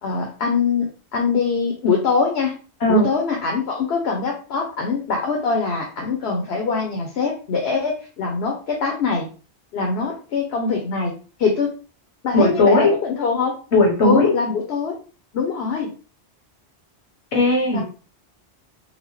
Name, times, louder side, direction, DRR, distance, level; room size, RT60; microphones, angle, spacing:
voice 1, 0.0-2.5 2.9-9.3 9.7-11.1 11.4-11.7 12.2-13.6 14.0-15.0 15.3-15.9 17.7-17.8, left 5 dB, 70° left, 2 dB, 0.9 m, -23 dB
voice 2, 12.3-12.9 13.7-14.3 17.3-17.8, left 2 dB, 90° left, -1 dB, 1.4 m, -16 dB
4.0 x 2.2 x 3.1 m, 0.37 s
omnidirectional pair, 1.1 m